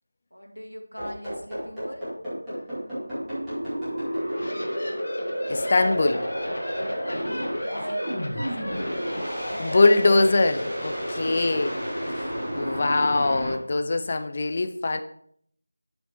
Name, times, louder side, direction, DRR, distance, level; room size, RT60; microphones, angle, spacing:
voice 1, 0.3-2.1 7.6-9.1 11.0-12.0, equal, 90° left, 1 dB, 1.9 m, -42 dB
sound 1, 1.0-13.5, equal, 10° right, 2.6 m, -31 dB
sound 2, 4.1-9.9, left 1 dB, 50° left, 1.6 m, -36 dB
voice 2, 5.5-6.2 9.4-11.7 12.5-15.0, left 2 dB, 30° left, 8 dB, 0.5 m, -22 dB
12.0 x 5.1 x 3.1 m, 0.65 s
figure-of-eight pair, 170°, 0 cm